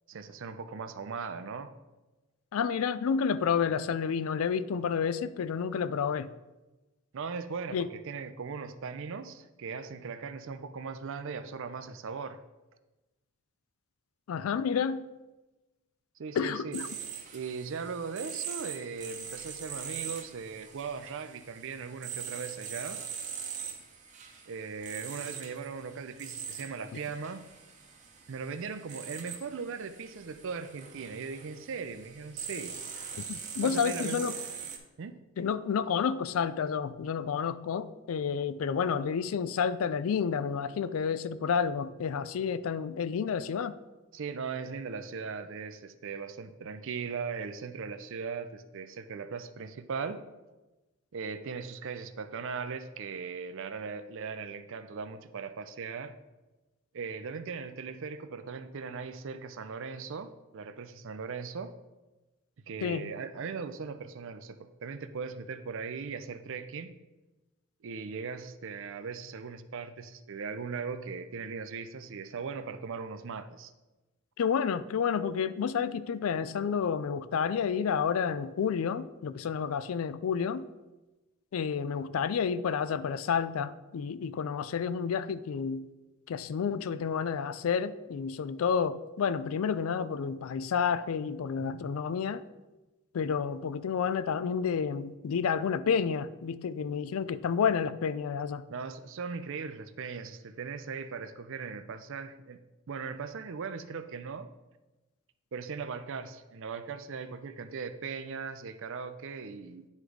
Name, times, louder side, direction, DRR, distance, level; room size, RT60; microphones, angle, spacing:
voice 1, 0.1-1.7 7.1-12.4 16.2-16.8 17.3-23.0 24.5-27.4 28.3-32.8 33.6-34.3 35.0-35.2 44.1-50.2 51.1-56.1 56.9-61.7 62.7-66.9 67.8-73.7 91.6-91.8 98.7-102.6 102.9-104.5 105.5-109.9, right 5 dB, 60° right, 10 dB, 0.4 m, -39 dB
voice 2, 2.5-6.3 7.7-7.9 14.3-15.0 16.4-16.9 33.3-34.3 35.4-43.7 62.8-63.1 74.4-80.6 81.5-85.9 86.3-92.4 93.1-98.6, left 6 dB, 65° left, 14 dB, 0.3 m, -30 dB
sound 1, 16.7-34.8, right 7 dB, 35° right, 0.8 m, -42 dB
9.5 x 3.2 x 4.9 m, 1.1 s
head